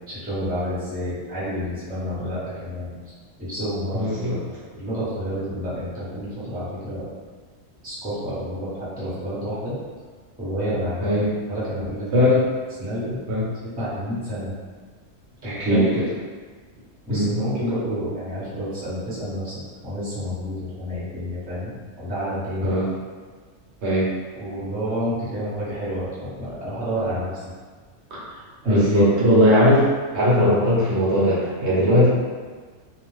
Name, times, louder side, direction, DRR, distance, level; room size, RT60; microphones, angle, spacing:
voice 1, 0.1-2.9 3.5-4.0 4.7-7.1 7.8-9.7 10.4-11.1 11.5-12.3 12.8-13.2 13.6-14.5 15.4-15.8 17.1-22.8 24.4-27.3 28.6-29.0, equal, 10° right, -10 dB, 0.7 m, -29 dB
voice 2, 3.9-4.4 11.0-11.3 12.1-12.4 13.3-13.5 15.4-15.9 17.1-17.4 22.6-22.9 23.8-24.1 28.7-29.9 30.1-32.1, equal, 65° right, -7 dB, 1.0 m, -18 dB
2.5 x 2.1 x 3.1 m, 1.5 s
omnidirectional pair, 1.3 m